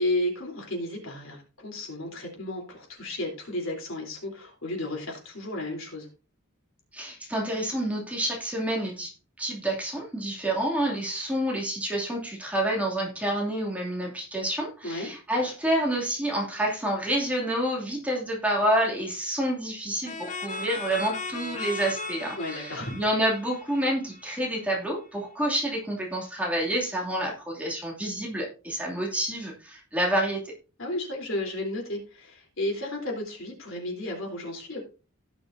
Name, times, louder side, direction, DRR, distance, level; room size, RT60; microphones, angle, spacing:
voice 1, 0.0-6.1 14.8-15.1 22.4-23.0 30.8-34.8, left 1 dB, 65° left, 0 dB, 3.6 m, -33 dB
voice 2, 6.9-9.1 9.4-30.5, right 1 dB, 5° right, -2 dB, 2.6 m, -28 dB
sound 1, 20.0-24.6, left 3 dB, 35° left, 1.0 m, -37 dB
17.5 x 6.2 x 2.7 m, 0.34 s
head